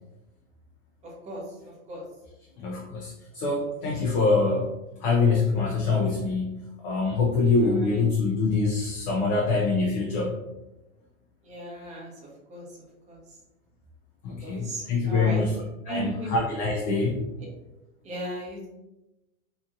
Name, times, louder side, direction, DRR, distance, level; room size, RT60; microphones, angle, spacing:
voice 1, 2.6-4.7 5.0-10.4 14.2-17.2, left 3 dB, 35° left, -1 dB, 0.4 m, -25 dB
voice 2, 11.4-12.1 12.5-12.6 13.1-13.2 14.4-15.5 15.9-16.3 18.0-18.7, equal, 15° right, -4 dB, 0.8 m, -35 dB
2.9 x 2.5 x 2.5 m, 0.99 s
hypercardioid pair, 120°, 41 cm